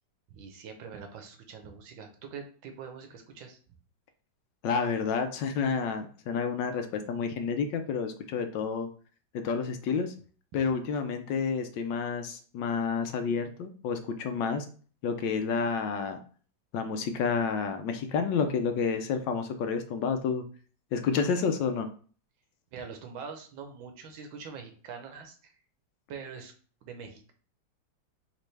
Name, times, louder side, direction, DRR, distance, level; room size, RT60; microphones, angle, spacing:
voice 1, 0.3-3.6 22.7-25.5 26.1-26.5 26.8-27.3, right 6 dB, 85° right, 5 dB, 1.6 m, -44 dB
voice 2, 4.6-8.9 9.3-10.1 10.5-14.7 15.0-16.2 16.7-20.4 20.9-21.9, left 5 dB, 75° left, 7 dB, 1.3 m, -29 dB
5.2 x 3.0 x 3.3 m, 0.42 s
omnidirectional pair, 2.1 m